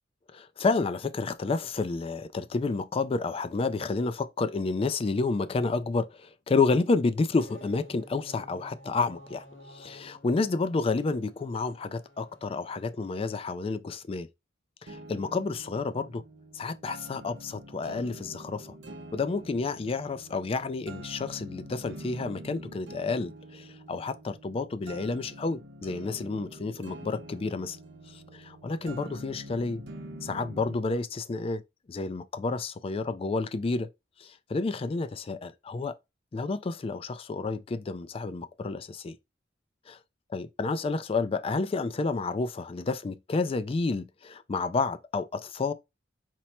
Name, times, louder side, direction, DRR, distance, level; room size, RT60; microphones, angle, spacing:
voice 1, 0.3-14.3 14.8-16.2 16.5-18.7 19.1-27.8 28.1-29.8 30.2-31.6 31.9-33.9 34.2-36.0 36.3-39.2 39.9-40.0 40.3-45.7, left 3 dB, 30° left, 0.3 m, -30 dB
sound 1, 7.1-13.1, equal, 75° left, 1.6 m, -52 dB
sound 2, 14.9-30.9, right 1 dB, 65° right, 0.7 m, -46 dB
4.4 x 2.1 x 4.2 m
head